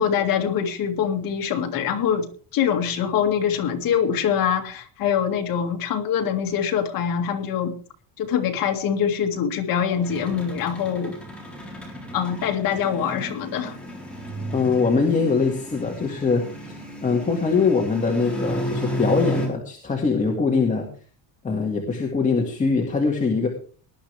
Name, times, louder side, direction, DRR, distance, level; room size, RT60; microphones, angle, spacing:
voice 1, 0.0-7.8 8.2-11.1 12.1-13.8, left 8 dB, 50° left, 3 dB, 2.3 m, -24 dB
sound 1, 9.9-19.5, equal, 5° left, 4.0 m, -33 dB
voice 2, 14.5-20.9 21.4-23.5, left 4 dB, 20° left, 0 dB, 2.0 m, -22 dB
19.0 x 11.5 x 3.4 m, 0.40 s
cardioid pair, 170°, 42 cm